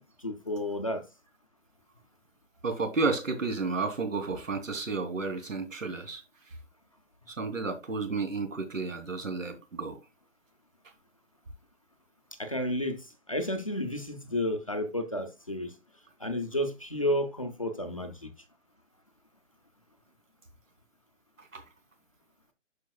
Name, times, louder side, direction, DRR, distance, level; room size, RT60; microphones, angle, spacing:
voice 1, 0.2-1.1 12.4-15.8 16.2-18.3, left 1 dB, 25° left, 0.6 m, -31 dB
voice 2, 2.6-6.6 7.3-10.0 21.4-21.6, right 4 dB, 80° right, 3.1 m, -32 dB
12.5 x 5.2 x 2.3 m
hypercardioid pair, 180°, 38 cm